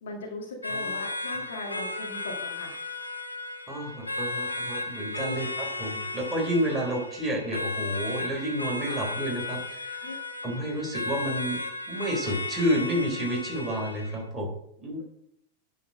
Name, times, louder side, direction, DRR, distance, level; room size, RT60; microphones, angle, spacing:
voice 1, 0.0-2.8 5.2-5.4 6.7-6.9 8.9-9.0 10.0-10.2, left 2 dB, 60° left, 1 dB, 1.8 m, -39 dB
sound 1, 0.6-14.2, left 2 dB, 85° left, 0.9 m, -35 dB
voice 2, 3.7-9.9 10.4-11.6 11.9-14.5 14.8-15.1, equal, 15° right, -2 dB, 3.8 m, -30 dB
9.8 x 4.6 x 6.2 m, 0.73 s
figure-of-eight pair, 90°, 0 cm